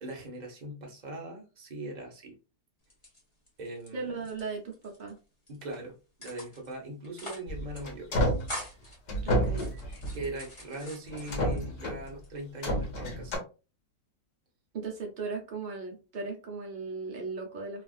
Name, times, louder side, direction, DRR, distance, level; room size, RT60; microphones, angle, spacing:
voice 1, 0.0-2.3 3.6-4.2 5.5-5.9 6.2-8.1 9.9-13.4, right 1 dB, 40° right, -1 dB, 0.6 m, -40 dB
sound 1, 2.8-3.9 4.2-5.1 5.5-5.8 6.2-6.7 7.0-7.5 7.7-7.8 8.1-9.0 9.5-11.6 12.1-12.7, equal, 25° left, 0.8 m, -44 dB
voice 2, 3.9-5.2 9.2-9.7 14.7-17.8, right 4 dB, 85° right, 1 dB, 0.4 m, -37 dB
sound 2, 7.5-8.5 9.1-10.4 11.1-12.1 12.6-13.4, equal, 55° left, 1.3 m, -30 dB
3.4 x 2.3 x 2.3 m, 0.32 s
omnidirectional pair, 1.8 m